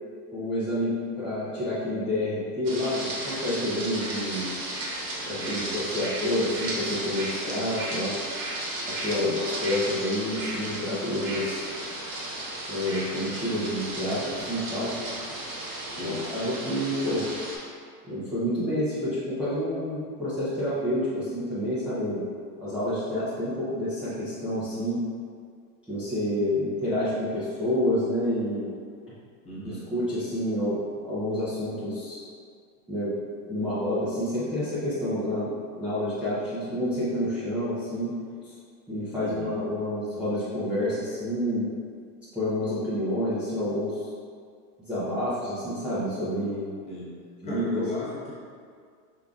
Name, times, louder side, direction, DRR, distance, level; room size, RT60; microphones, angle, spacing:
voice 1, 0.3-4.5 5.2-5.6 5.9-8.1 9.0-11.7 12.7-15.0 16.0-17.3 18.1-22.2 22.6-25.0 25.9-28.7 29.9-32.3 32.9-33.1 33.5-38.1 38.4-38.5 38.9-41.7 42.3-43.9 44.8-46.7 47.4-47.8, left 1 dB, 5° right, -14 dB, 0.5 m, -28 dB
sound 1, 2.6-17.6, right 1 dB, 40° right, 1.1 m, -34 dB
voice 2, 5.4-5.9 9.0-9.4 16.0-16.2 29.4-29.9 39.2-39.6 46.9-47.2 47.4-48.3, left 2 dB, 15° left, -7 dB, 0.9 m, -36 dB
5.2 x 3.7 x 2.3 m, 2.1 s
supercardioid pair, 140°, 49 cm